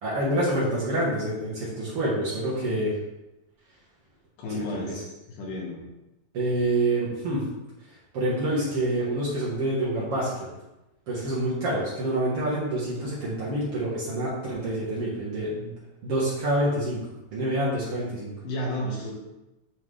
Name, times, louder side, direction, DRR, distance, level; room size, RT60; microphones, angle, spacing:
voice 1, 0.0-2.9 4.5-4.9 6.3-7.5 8.1-10.3 11.1-15.7 16.0-17.0 17.3-18.3, right 1 dB, 55° right, -7 dB, 1.8 m, -27 dB
voice 2, 4.4-5.8 18.4-19.1, left 1 dB, 75° left, -2 dB, 2.9 m, -32 dB
9.2 x 3.8 x 3.3 m, 0.98 s
omnidirectional pair, 4.1 m